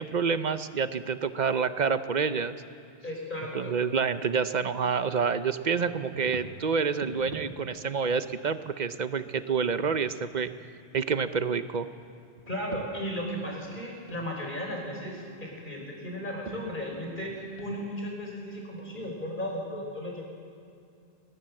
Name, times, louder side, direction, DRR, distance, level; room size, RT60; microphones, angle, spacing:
voice 1, 0.0-2.5 3.5-10.5 10.9-11.9, right 5 dB, 45° right, 12 dB, 0.8 m, -28 dB
voice 2, 3.0-3.7 12.5-20.2, equal, 50° left, 0 dB, 5.2 m, -35 dB
sound 1, 6.1-6.6 7.0-8.2 9.3-10.2 10.4-10.6 11.3-12.1 12.4-13.8 14.1-14.3 14.6-15.6 16.2-16.6 16.9-19.6, right 3 dB, 65° right, 1.9 m, -46 dB
21.0 x 19.5 x 7.8 m, 2.4 s
omnidirectional pair, 1.1 m